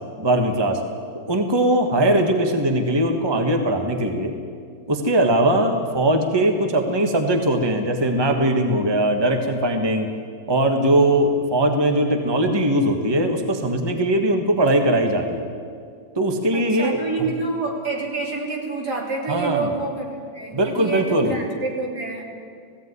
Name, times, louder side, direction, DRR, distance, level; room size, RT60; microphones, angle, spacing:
voice 1, 0.2-0.8 1.1-4.3 4.9-10.1 10.5-15.5 16.1-17.0 19.3-19.7 20.5-21.3, right 1 dB, 15° right, 4 dB, 1.4 m, -20 dB
voice 2, 16.5-22.2, right 3 dB, 70° right, -1 dB, 3.9 m, -28 dB
18.0 x 16.0 x 9.6 m, 2.2 s
omnidirectional pair, 1.8 m